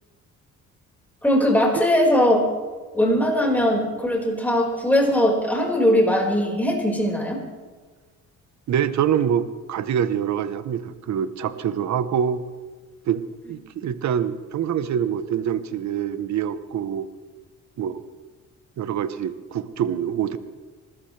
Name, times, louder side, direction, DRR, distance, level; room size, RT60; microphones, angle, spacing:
voice 1, 1.2-2.4 2.9-7.4, left 1 dB, 5° left, -1 dB, 5.2 m, -20 dB
voice 2, 8.7-12.4 13.1-13.2 13.5-17.1 17.8-18.0 18.8-20.4, right 8 dB, 65° right, 12 dB, 1.1 m, -25 dB
26.5 x 13.5 x 3.4 m, 1.4 s
cardioid pair, 90°, 30 cm